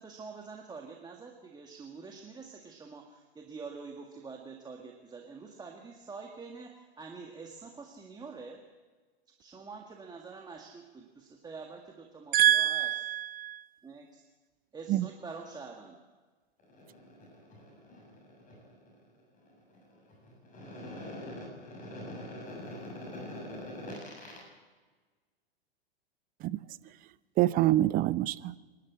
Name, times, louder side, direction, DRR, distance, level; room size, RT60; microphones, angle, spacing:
voice 1, 0.0-8.6 9.4-12.9 13.8-14.2 14.7-16.0, right 4 dB, 15° right, 1 dB, 1.9 m, -46 dB
voice 2, 12.3-13.7 14.9-15.0 26.4-26.6 27.4-28.5, right 13 dB, 30° right, 16 dB, 0.7 m, -26 dB
voice 3, 16.6-24.4, left 1 dB, 25° left, -1 dB, 6.9 m, -45 dB
26.0 x 11.5 x 8.5 m, 1.4 s
figure-of-eight pair, 100°, 30 cm